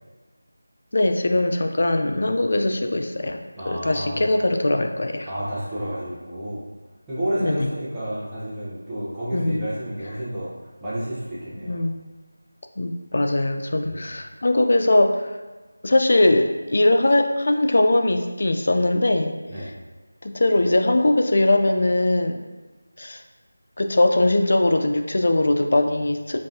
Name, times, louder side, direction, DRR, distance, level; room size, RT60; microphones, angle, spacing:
voice 1, 0.9-3.4 3.7-5.3 7.4-7.7 9.3-9.7 11.6-12.0 12.8-15.3 15.8-19.3 20.2-22.4 23.0-23.2 23.8-26.4, left 2 dB, 50° left, 5 dB, 0.3 m, -21 dB
voice 2, 3.6-4.3 5.3-6.6 7.1-10.5 10.8-11.8 13.8-14.0 19.5-19.7, right 1 dB, 5° right, -14 dB, 0.7 m, -30 dB
5.2 x 2.4 x 2.7 m, 1.3 s
figure-of-eight pair, 175°, 0 cm